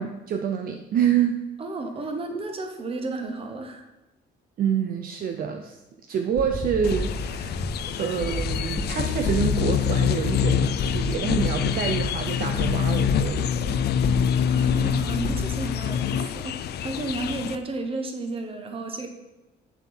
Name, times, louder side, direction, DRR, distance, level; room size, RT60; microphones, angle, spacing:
voice 1, 0.0-1.4 4.6-5.8 6.1-7.6 8.0-13.8, right 8 dB, 55° right, 5 dB, 0.6 m, -27 dB
voice 2, 1.6-3.8 14.5-19.1, right 2 dB, 30° right, 5 dB, 1.2 m, -32 dB
sound 1, 6.3-15.5, left 2 dB, 40° left, 0.9 m, -32 dB
sound 2, 6.8-17.6, left 8 dB, 65° left, 0.5 m, -26 dB
8.2 x 7.0 x 4.4 m, 1.0 s
cardioid pair, 170°, 18 cm